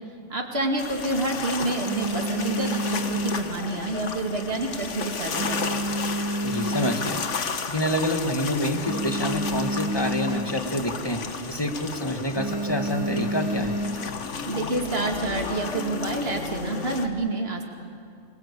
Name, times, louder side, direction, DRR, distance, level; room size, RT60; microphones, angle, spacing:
voice 1, 0.3-5.8 14.4-17.6, right 2 dB, 55° right, 2 dB, 2.7 m, -28 dB
sound 1, 0.5-1.3 1.7-4.2 4.4-4.8 5.1-7.4 7.8-7.9 8.1-8.2 8.5-10.7 11.1-11.3 11.6-11.9 12.3-14.2 14.9-15.5, right 1 dB, 20° right, 1.7 m, -30 dB
sound 2, 0.8-17.1, left 5 dB, 75° left, 1.6 m, -33 dB
voice 2, 6.4-7.2 7.7-11.2 11.5-13.8, equal, 20° left, 5 dB, 2.0 m, -27 dB
29.5 x 21.0 x 8.4 m, 2.4 s
omnidirectional pair, 1.2 m